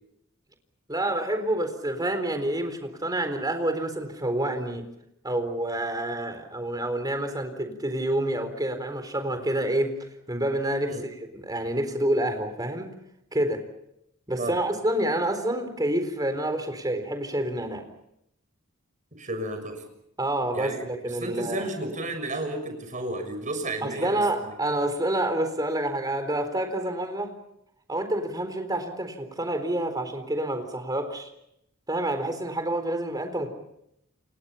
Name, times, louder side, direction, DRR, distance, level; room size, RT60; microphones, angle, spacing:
voice 1, 0.9-4.9 5.2-12.9 13.3-13.6 14.3-17.8 20.2-21.7 23.8-27.3 27.9-31.3 31.9-33.5, right 1 dB, 20° right, 7 dB, 4.1 m, -28 dB
voice 2, 19.1-19.8 20.5-24.5, right 1 dB, 40° right, 6 dB, 6.6 m, -33 dB
30.0 x 27.0 x 5.8 m, 0.78 s
head